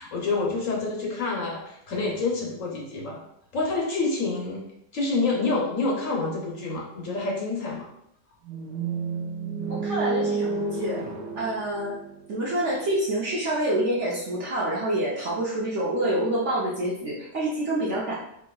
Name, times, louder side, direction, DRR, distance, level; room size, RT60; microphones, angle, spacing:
voice 1, 0.0-3.2 3.5-4.6 4.9-7.9, left 3 dB, 60° left, -2 dB, 1.0 m, -27 dB
sound 1, 8.4-12.6, right 4 dB, 90° right, 1.2 m, -30 dB
voice 2, 9.7-11.0 11.4-12.0 12.3-18.1, right 1 dB, 55° right, -5 dB, 0.9 m, -27 dB
4.5 x 2.9 x 2.3 m, 0.77 s
omnidirectional pair, 1.8 m